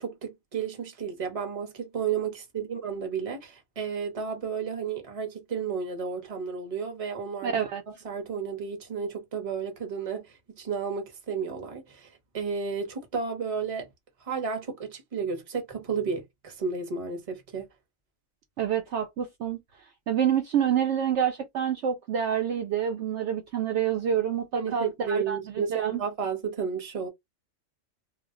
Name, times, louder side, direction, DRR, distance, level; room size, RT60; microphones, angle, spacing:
voice 1, 0.0-7.6 7.9-13.9 14.2-17.7 24.6-27.1, right 6 dB, 30° right, 0.8 m, -32 dB
voice 2, 7.4-7.8 18.6-19.6 20.1-26.0, right 8 dB, 65° right, 0.8 m, -27 dB
2.4 x 2.1 x 3.6 m
omnidirectional pair, 1.4 m